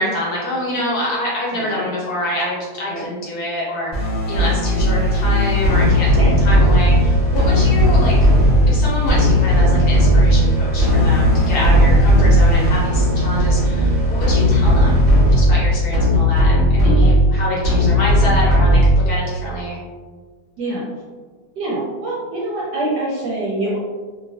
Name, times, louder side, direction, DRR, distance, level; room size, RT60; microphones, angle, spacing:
voice 1, 0.0-8.2 8.7-15.0 15.3-19.8, left 1 dB, 60° left, -5 dB, 1.1 m, -26 dB
voice 2, 1.5-1.9 2.9-3.0 6.1-6.6 7.5-7.7 16.8-17.2 20.6-20.8 21.6-23.8, right 1 dB, 70° right, -5 dB, 1.1 m, -25 dB
sound 1, 3.9-19.3, equal, 20° left, 1.1 m, -15 dB
2.9 x 2.8 x 2.6 m, 1.4 s
omnidirectional pair, 2.1 m